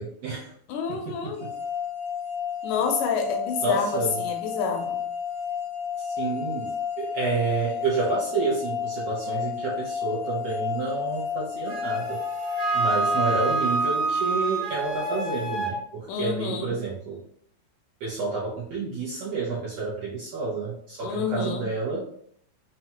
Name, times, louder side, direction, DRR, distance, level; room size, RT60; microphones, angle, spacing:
voice 1, 0.0-0.5 0.9-1.6 3.6-4.2 6.0-12.2 12.7-17.2 18.0-22.1, right 4 dB, 75° right, -6 dB, 1.5 m, -29 dB
voice 2, 0.7-1.4 2.6-5.0 16.1-16.7 21.0-21.7, left 5 dB, 80° left, 3 dB, 2.0 m, -28 dB
sound 1, 1.4-14.3, left 7 dB, 50° right, 1.3 m, -32 dB
Wind instrument woodwind instrument, 11.7-15.8, right 3 dB, 30° right, 0.7 m, -27 dB
5.5 x 2.2 x 2.9 m, 0.64 s
omnidirectional pair, 3.8 m